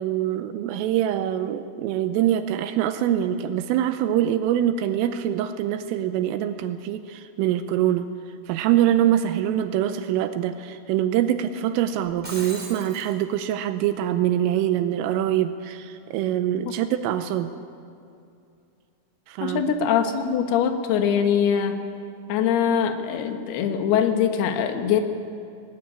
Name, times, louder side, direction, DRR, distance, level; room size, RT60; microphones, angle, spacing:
voice 1, 0.0-8.1 8.5-17.5 19.3-19.6, right 11 dB, 80° right, 10 dB, 3.2 m, -24 dB
Shatter, 12.0-13.1, right 1 dB, 15° right, 2.1 m, -38 dB
voice 2, 19.4-21.8 22.3-25.0, left 8 dB, 65° left, 6 dB, 2.7 m, -22 dB
20.0 x 17.5 x 9.8 m, 2.5 s
omnidirectional pair, 6.0 m